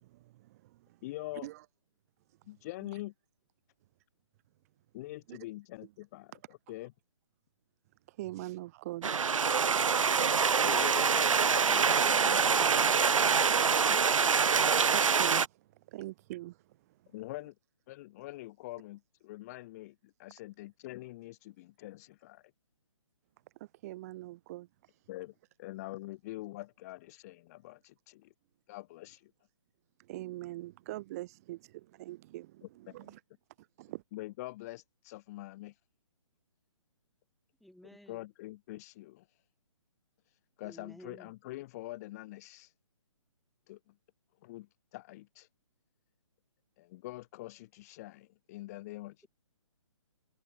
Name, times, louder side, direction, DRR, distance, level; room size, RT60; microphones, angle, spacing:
voice 1, 0.0-0.8 1.4-1.6 5.3-5.4 8.1-9.1 14.0-14.1 14.6-15.6 15.9-16.6 23.6-25.0 30.1-33.2 33.8-34.0, right 17 dB, 30° right, 1.0 m, -43 dB
voice 2, 1.0-1.5 2.5-3.1 4.9-6.9 10.6-14.0 17.1-17.6 17.9-22.4 25.1-28.3 28.7-29.3 32.6-33.2 34.1-35.8 38.1-39.4 40.3-42.7 43.7-43.9 44.4-45.5 46.8-49.3, left 18 dB, 30° left, 1.7 m, -45 dB
sound 1, 9.0-15.5, right 6 dB, 80° right, 0.4 m, -25 dB
voice 3, 37.6-38.2 40.6-41.3, equal, ahead, 1.2 m, -53 dB
figure-of-eight pair, 135°, 17 cm